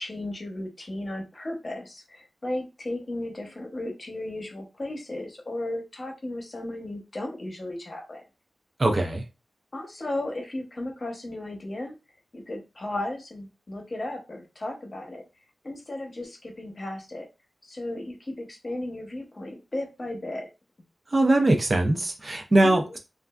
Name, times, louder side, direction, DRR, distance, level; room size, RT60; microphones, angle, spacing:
voice 1, 0.0-8.2 9.7-12.0 12.3-15.2 15.6-17.3 17.6-20.5 22.6-23.0, left 1 dB, 40° left, 0.8 m, -35 dB
voice 2, 8.8-9.2 21.1-23.0, right 1 dB, 35° right, 0.5 m, -21 dB
3.1 x 2.4 x 2.3 m
wide cardioid pair, 90°, 0 cm